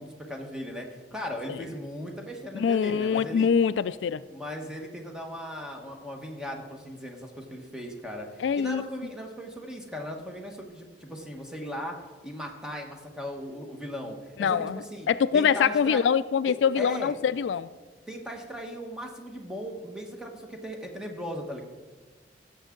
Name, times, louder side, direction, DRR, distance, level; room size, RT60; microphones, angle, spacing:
voice 1, 0.0-3.5 4.3-11.9 12.2-15.1 15.3-16.0 16.5-17.1 18.1-21.6, equal, 5° right, 1.3 m, -38 dB
voice 2, 2.5-4.2 8.4-8.9 14.4-17.7, left 7 dB, 85° left, 0.3 m, -24 dB
16.0 x 7.3 x 3.8 m
head